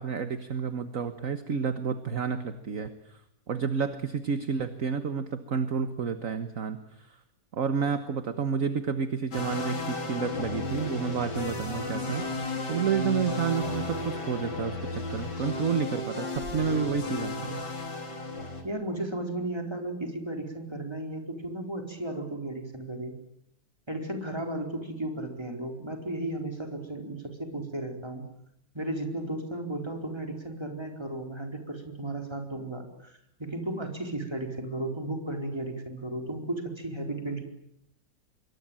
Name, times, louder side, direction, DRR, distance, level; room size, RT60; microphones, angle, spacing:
voice 1, 0.0-3.2 3.5-7.2 7.5-12.2 12.7-17.6, right 6 dB, 50° right, 10 dB, 1.6 m, -30 dB
sound 1, 9.3-18.6, left 2 dB, 70° left, 4.4 m, -34 dB
voice 2, 18.6-23.1 23.9-28.2 28.7-37.4, right 1 dB, 15° right, 4 dB, 4.5 m, -34 dB
26.5 x 23.0 x 9.0 m, 0.74 s
omnidirectional pair, 1.9 m